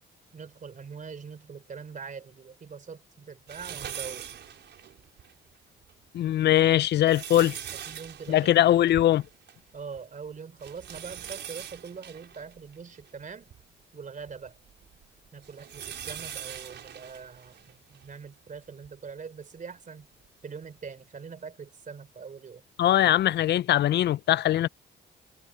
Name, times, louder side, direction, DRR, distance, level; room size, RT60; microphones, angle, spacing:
voice 1, 0.3-4.3 7.7-8.8 9.7-13.5 13.9-14.6 15.3-20.1 20.4-22.6, right 5 dB, 40° right, 3.8 m, -43 dB
sound 1, 3.5-5.3 5.8-5.9 6.7-9.7 10.0-10.1 10.6-13.6 14.2-18.1 18.8-18.9 20.2-20.3, right 9 dB, 65° right, 5.4 m, -42 dB
voice 2, 6.1-7.6 8.3-9.2 22.8-24.7, left 13 dB, 60° left, 0.4 m, -21 dB
cardioid pair, 90°, 20 cm